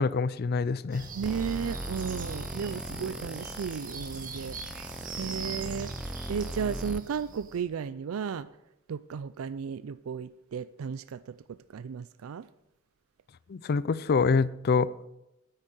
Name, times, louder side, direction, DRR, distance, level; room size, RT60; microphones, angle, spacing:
voice 1, 0.0-1.0 13.5-14.9, left 4 dB, 50° left, 0.4 m, -25 dB
sound 1, 0.9-7.6, right 3 dB, 40° right, 1.8 m, -42 dB
voice 2, 1.1-4.9 5.2-5.9 6.3-8.5 8.9-12.5, right 7 dB, 85° right, 0.4 m, -34 dB
sound 2, 1.2-7.0, right 1 dB, 5° right, 0.5 m, -39 dB
9.8 x 8.9 x 6.4 m
head